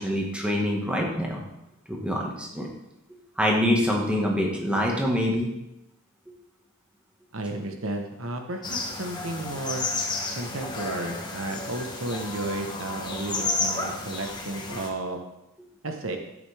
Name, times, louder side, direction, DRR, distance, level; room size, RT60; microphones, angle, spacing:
voice 1, 0.0-1.4 1.9-2.7 3.4-5.5, equal, 5° right, -1 dB, 1.6 m, -25 dB
voice 2, 7.3-9.9 10.3-15.2 15.8-16.2, right 2 dB, 65° right, 4 dB, 1.1 m, -33 dB
sound 1, 8.6-14.9, left 3 dB, 20° left, 1.2 m, -32 dB
12.0 x 8.6 x 3.5 m, 0.88 s
head